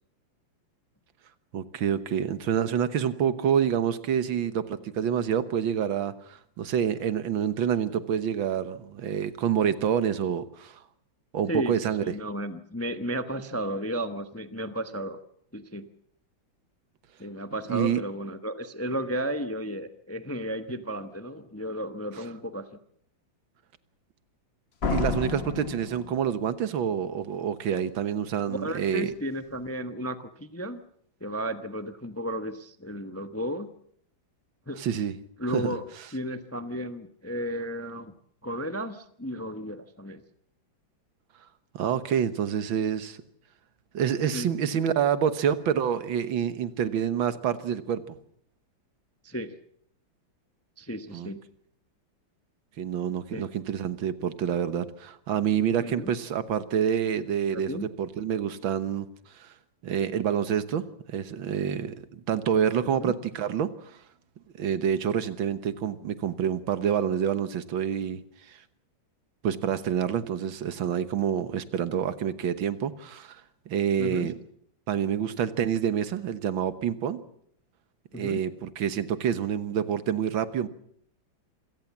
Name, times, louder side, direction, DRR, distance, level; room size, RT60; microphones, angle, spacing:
voice 1, 1.5-10.8 11.3-12.0 17.7-18.0 22.1-22.2 24.9-29.1 34.8-35.2 35.5-35.8 41.7-43.2 43.9-48.2 51.1-51.3 52.8-59.1 59.3-59.5 59.8-63.9 64.6-68.2 68.5-68.6 69.4-73.4 73.7-74.4 74.9-77.2 78.1-80.7, right 8 dB, 85° right, 13 dB, 2.0 m, -27 dB
voice 2, 12.0-15.2 15.5-15.9 17.2-22.6 28.5-30.8 31.2-33.7 34.7-34.8 35.4-35.8 36.1-38.1 38.4-40.2 44.3-44.5 49.2-49.5 50.8-51.4 53.3-53.5 55.8-56.1 57.5-57.9 62.8-63.1 74.0-74.3 78.1-78.4, equal, 15° left, 10 dB, 0.6 m, -33 dB
Slam, 24.8-26.7, left 5 dB, 35° left, 1.3 m, -30 dB
26.5 x 17.5 x 7.3 m, 0.67 s
omnidirectional pair, 2.1 m